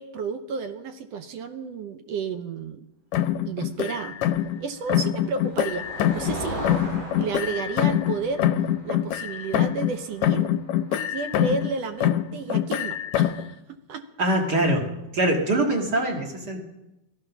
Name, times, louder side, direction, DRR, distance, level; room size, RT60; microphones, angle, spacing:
voice 1, 0.0-2.9 3.5-4.2 4.6-5.9 6.1-6.7 7.2-8.5 8.8-10.5 10.9-14.1, right 5 dB, 70° right, 8 dB, 1.7 m, -32 dB
sound 1, 3.1-4.6 4.9-6.4 6.6-10.0 10.2-11.7 12.0-13.5, left 11 dB, 75° left, 1.7 m, -24 dB
Motor vehicle (road), 4.4-12.1, equal, 85° right, 6.9 m, -39 dB
voice 2, 14.2-16.7, right 1 dB, 35° right, 2 dB, 2.0 m, -23 dB
17.5 x 14.0 x 5.9 m, 0.96 s
omnidirectional pair, 3.7 m